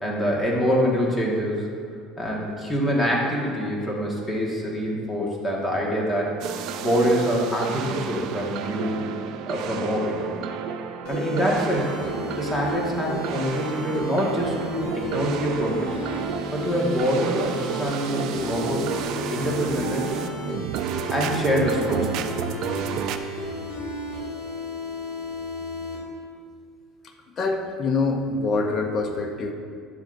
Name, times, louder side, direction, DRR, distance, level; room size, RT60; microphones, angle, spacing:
voice 1, 0.0-1.7 2.2-6.4 6.8-9.0 9.5-10.2 11.1-12.0 12.4-16.0 16.5-18.9 19.3-20.2 21.1-22.2, equal, 15° left, -3 dB, 1.7 m, -25 dB
sound 1, 6.4-23.2, right 7 dB, 60° right, 0.5 m, -31 dB
sound 2, 11.0-26.0, left 1 dB, 75° left, 2.1 m, -34 dB
voice 2, 27.4-29.5, left 3 dB, 35° left, 4 dB, 0.8 m, -25 dB
10.5 x 7.3 x 2.6 m, 2.1 s
cardioid pair, 130°, 0 cm